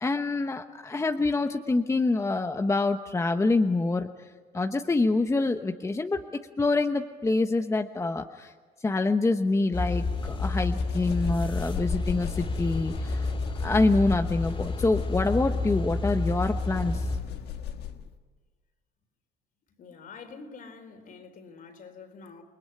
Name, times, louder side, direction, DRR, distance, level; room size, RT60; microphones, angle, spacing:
voice 1, 0.0-4.3 4.5-6.2 6.6-8.5 8.8-13.3 13.6-17.1, left 3 dB, 15° left, 1.0 m, -26 dB
sound 1, 9.7-17.2, left 2 dB, 30° left, 3.6 m, -30 dB
sound 2, 9.9-18.1, left 9 dB, 75° left, 1.8 m, -37 dB
voice 2, 19.8-22.4, left 5 dB, 55° left, 4.1 m, -46 dB
29.0 x 20.0 x 9.7 m
cardioid pair, 110°, 17 cm